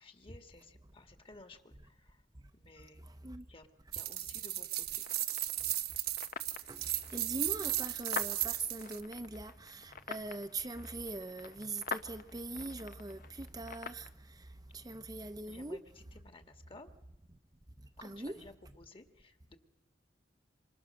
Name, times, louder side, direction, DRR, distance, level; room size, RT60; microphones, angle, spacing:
voice 1, 0.0-2.2 2.5-3.0 3.5-5.0 15.5-15.8 16.1-16.9 18.0-19.6, left 2 dB, 30° left, 1.9 m, -55 dB
sound 1, 3.9-9.0, right 14 dB, 60° right, 1.3 m, -36 dB
sound 2, 5.0-14.1, left 5 dB, 55° left, 1.0 m, -46 dB
voice 2, 6.7-14.1 14.7-15.8 18.0-18.4, right 2 dB, 20° right, 0.9 m, -42 dB
27.5 x 26.5 x 6.6 m
head